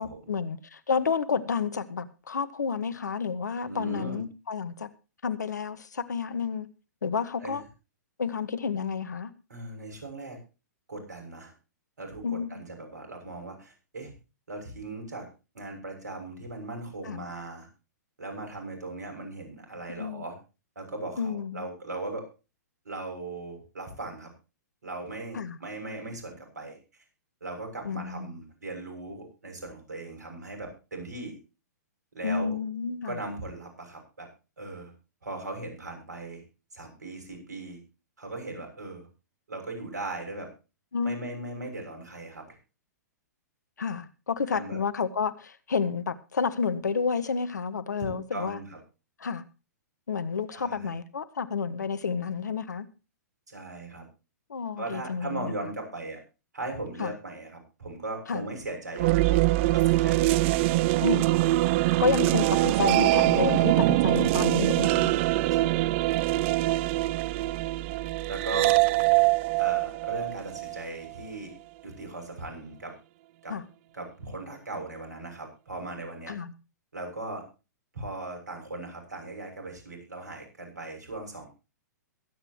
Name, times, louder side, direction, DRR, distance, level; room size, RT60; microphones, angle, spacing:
voice 1, 0.0-4.9 5.2-6.7 7.0-7.6 8.2-9.3 12.2-12.6 17.0-17.3 20.0-20.2 21.2-21.7 25.3-25.6 27.8-28.3 32.2-33.2 40.9-41.2 43.8-48.6 49.2-49.4 50.1-52.9 54.5-55.5 57.0-57.1 58.3-58.4 61.0-61.2 62.0-65.1 73.5-73.6 76.3-76.5, left 5 dB, 75° left, 1.3 m, -30 dB
voice 2, 3.7-4.2 7.4-7.6 9.5-10.4 10.9-11.5 12.0-14.1 14.5-15.3 15.5-17.7 18.2-20.4 20.8-22.3 22.9-24.3 24.8-26.8 27.4-31.4 32.2-32.6 33.1-34.3 34.6-34.9 35.2-36.4 36.7-37.8 38.2-39.1 39.5-40.5 41.0-42.5 44.5-44.8 48.0-48.8 50.5-50.9 53.5-54.0 54.8-56.2 56.5-60.7 68.3-68.8 69.6-71.5 71.8-72.9 73.4-73.5 73.9-76.3 76.9-77.4 77.9-81.5, right 2 dB, 75° right, 7.0 m, -38 dB
sound 1, 59.0-71.1, right 18 dB, 40° right, 0.6 m, -23 dB
22.5 x 9.2 x 3.0 m
figure-of-eight pair, 115°, 10 cm